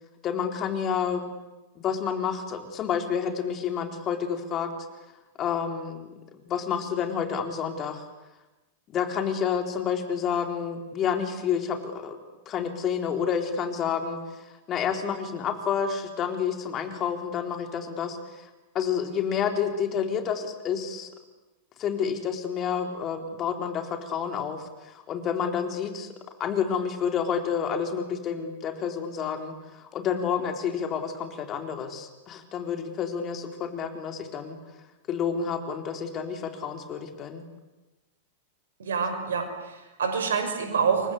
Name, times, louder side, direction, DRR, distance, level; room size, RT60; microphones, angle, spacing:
voice 1, 0.2-1.3 1.8-4.7 5.4-6.1 6.5-8.0 8.9-12.2 12.5-18.5 18.7-21.1 21.8-26.1 26.4-34.6 35.1-37.4, left 7 dB, 35° left, 5 dB, 4.0 m, -29 dB
voice 2, 38.8-41.1, right 6 dB, 70° right, 6 dB, 5.8 m, -27 dB
29.0 x 23.5 x 8.3 m, 1.1 s
figure-of-eight pair, 95°, 0 cm